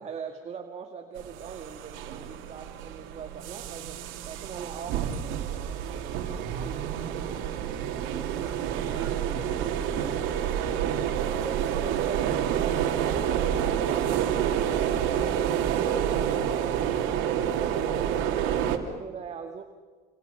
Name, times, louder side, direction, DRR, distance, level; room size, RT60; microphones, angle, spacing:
voice 1, 0.0-7.6 11.8-18.1 18.6-19.6, right 6 dB, 35° right, 4 dB, 2.0 m, -42 dB
sound 1, 1.2-18.8, right 9 dB, 80° right, 2.9 m, -28 dB
voice 2, 8.0-11.2, right 2 dB, 15° right, 0 dB, 6.3 m, -45 dB
27.5 x 27.5 x 7.0 m, 1.5 s
cardioid pair, 135°, 20 cm